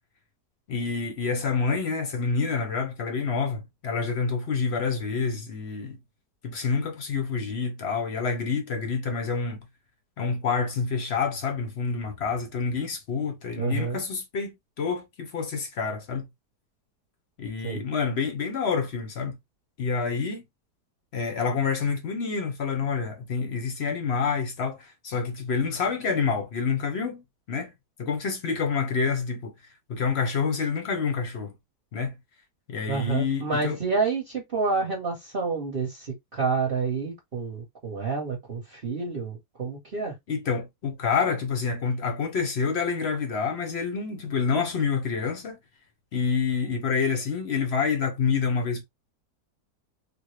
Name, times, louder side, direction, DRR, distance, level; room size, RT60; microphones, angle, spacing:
voice 1, 0.7-6.0 6.4-9.6 10.2-16.3 17.4-19.4 19.8-20.4 21.1-27.7 28.0-29.5 29.9-31.5 31.9-32.1 32.7-33.8 40.3-45.6 46.1-48.8, left 5 dB, 55° left, 0.8 m, -28 dB
voice 2, 13.6-14.0 17.6-17.8 32.9-40.1, right 4 dB, 40° right, 1.1 m, -29 dB
3.5 x 2.1 x 3.1 m
omnidirectional pair, 1.8 m